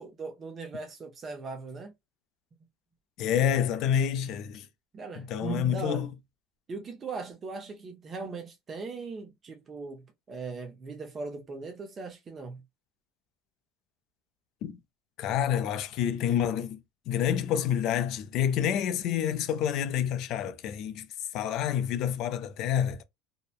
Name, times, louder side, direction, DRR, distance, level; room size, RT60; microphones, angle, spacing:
voice 1, 0.0-1.9 4.9-6.1 6.7-12.6, right 4 dB, 30° right, 0.6 m, -39 dB
voice 2, 3.2-4.7 5.2-6.1 14.6-14.8 15.2-21.1 21.3-23.0, left 9 dB, 55° left, 0.5 m, -28 dB
2.8 x 2.1 x 2.3 m
supercardioid pair, 125°, 0 cm